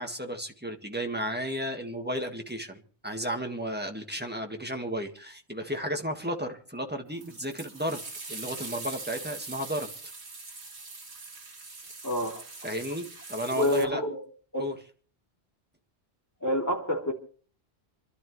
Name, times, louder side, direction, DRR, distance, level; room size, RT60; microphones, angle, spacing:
voice 1, 0.0-8.0 8.3-9.9 12.6-14.0 14.6-14.7, equal, 10° right, 1.6 m, -33 dB
sound 1, 7.2-13.9, right 3 dB, 85° right, 2.0 m, -42 dB
voice 2, 12.0-12.4 13.5-14.2 14.5-14.6 16.4-17.1, left 1 dB, 15° left, 3.1 m, -27 dB
29.0 x 11.5 x 3.2 m
omnidirectional pair, 1.1 m